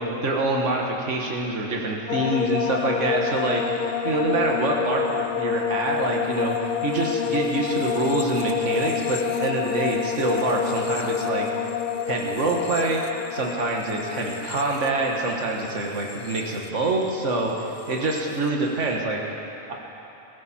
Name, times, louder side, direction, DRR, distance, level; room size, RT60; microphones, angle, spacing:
voice 1, 0.0-3.6 4.0-11.5 12.1-13.0 13.3-19.2 19.7-19.8, right 2 dB, 70° right, -1 dB, 1.9 m, -25 dB
sound 1, 2.1-17.3 17.6-18.2, left 8 dB, 60° left, 0.5 m, -28 dB
21.5 x 14.0 x 4.4 m, 2.9 s
omnidirectional pair, 1.3 m